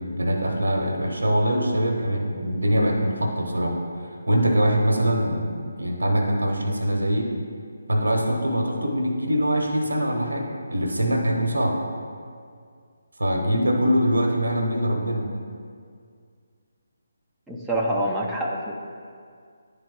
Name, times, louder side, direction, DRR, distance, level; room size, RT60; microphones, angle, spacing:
voice 1, 0.0-7.3 7.9-11.8 13.2-15.3, equal, 75° right, 2 dB, 0.9 m, -23 dB
voice 2, 17.5-18.7, right 1 dB, ahead, -6 dB, 0.5 m, -26 dB
9.7 x 3.6 x 3.6 m, 2.2 s
figure-of-eight pair, 150°, 0 cm